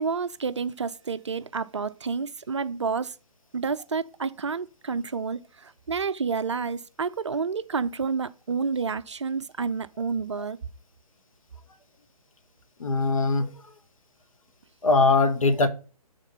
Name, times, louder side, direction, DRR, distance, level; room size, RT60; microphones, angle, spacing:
voice 1, 0.0-3.1 3.5-10.6, right 5 dB, 50° right, 0.5 m, -29 dB
voice 2, 12.8-13.5 14.8-15.7, left 3 dB, 60° left, 1.1 m, -21 dB
7.1 x 3.6 x 5.5 m
figure-of-eight pair, 140°, 20 cm